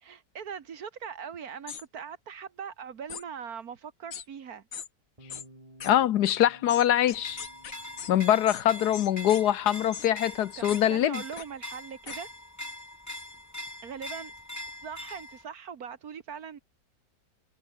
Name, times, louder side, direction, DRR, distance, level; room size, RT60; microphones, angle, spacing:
voice 1, 0.0-4.7 10.6-12.3 13.8-14.3 14.8-16.6, right 7 dB, 60° right, 1.8 m, -41 dB
sound 1, 1.7-1.8 3.1-3.2 4.1-4.3 4.7-4.9 5.3-5.5 5.8-5.9 6.3-6.4 6.7-8.1 8.5-8.6 8.9-9.4 9.9-10.1 10.7-10.8 11.4-11.5 12.1-12.2, left 7 dB, 55° left, 1.7 m, -40 dB
Bass guitar, 5.2-11.4, right 1 dB, 20° right, 5.7 m, -57 dB
voice 2, 5.8-7.4 8.1-11.2, left 11 dB, 70° left, 1.2 m, -23 dB
sound 2, 7.1-15.4, left 1 dB, 10° left, 1.8 m, -42 dB
omnidirectional pair, 1.9 m